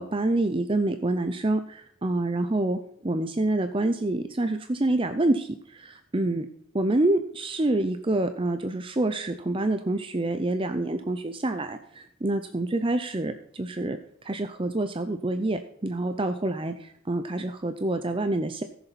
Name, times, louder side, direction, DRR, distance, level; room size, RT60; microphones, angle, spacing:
voice 1, 0.0-6.5 6.7-14.0 14.2-18.6, right 2 dB, 25° right, 8 dB, 0.5 m, -27 dB
15.5 x 6.9 x 4.1 m, 0.68 s
head